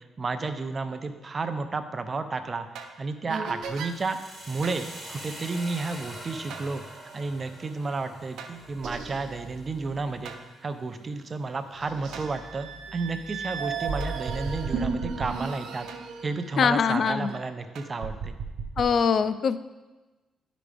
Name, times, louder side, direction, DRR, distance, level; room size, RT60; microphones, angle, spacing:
voice 1, 0.2-2.7 3.0-4.2 4.5-6.8 7.1-10.3 10.6-15.9 16.2-18.3, right 3 dB, 35° right, 8 dB, 0.6 m, -32 dB
sound 1, 2.8-3.0 3.3-4.0 4.6-4.8 6.5-6.7 8.4-10.4 11.0-11.1 11.7-17.5 17.8-18.9, right 5 dB, 80° right, 0.7 m, -35 dB
sound 2, 3.6-11.6, right 1 dB, ahead, 2.6 m, -45 dB
voice 2, 16.6-17.3 18.8-19.6, left 6 dB, 55° left, 13 dB, 0.3 m, -23 dB
10.5 x 5.0 x 3.4 m, 1.2 s
cardioid pair, 90°, 0 cm